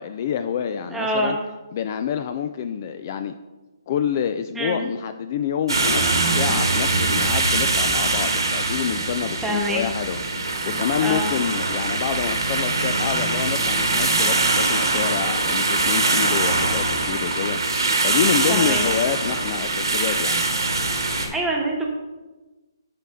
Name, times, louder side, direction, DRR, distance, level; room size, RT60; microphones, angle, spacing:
voice 1, 0.0-1.4 1.7-3.3 3.9-20.4, left 8 dB, 40° left, 9 dB, 0.3 m, -27 dB
voice 2, 0.9-1.4 4.5-4.8 9.4-9.8 11.0-11.3 18.5-18.8 21.1-21.9, right 1 dB, 5° right, -1 dB, 1.1 m, -25 dB
sound 1, 5.7-21.3, right 3 dB, 80° right, 1.5 m, -22 dB
11.5 x 4.2 x 3.6 m, 1.2 s
hypercardioid pair, 145°, 2 cm